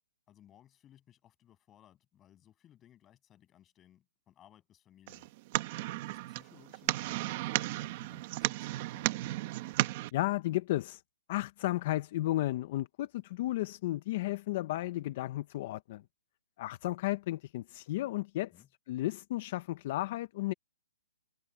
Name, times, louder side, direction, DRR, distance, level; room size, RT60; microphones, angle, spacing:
voice 1, 0.3-5.3 5.9-9.2 18.5-18.7, left 11 dB, 10° left, 6.6 m, -61 dB
sound 1, 5.1-10.1, right 17 dB, 25° right, 1.3 m, -34 dB
voice 2, 10.1-11.0 11.3-16.0 16.6-18.5 18.9-20.5, left 16 dB, 30° left, 0.5 m, -33 dB
hypercardioid pair, 175°, 0 cm